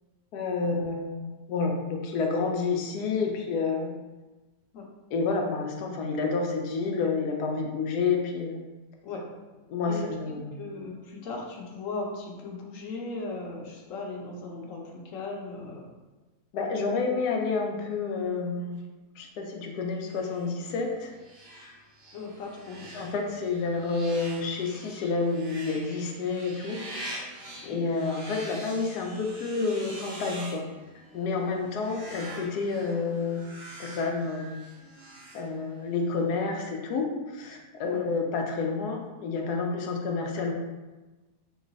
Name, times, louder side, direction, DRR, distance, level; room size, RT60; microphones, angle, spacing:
voice 1, 0.3-3.9 5.1-8.6 9.7-10.6 16.5-18.8 19.2-21.1 22.9-26.8 27.1-27.3 27.7-30.6 31.1-33.4 33.8-34.6 35.3-40.5, left 4 dB, 85° left, 2 dB, 1.2 m, -29 dB
voice 2, 9.9-15.9 22.1-22.9 27.6-27.8 37.9-38.0, left 3 dB, 60° left, 0 dB, 1.0 m, -38 dB
sound 1, 20.1-36.0, right 1 dB, 50° right, 0.8 m, -45 dB
3.1 x 3.0 x 3.9 m, 1.2 s
omnidirectional pair, 1.7 m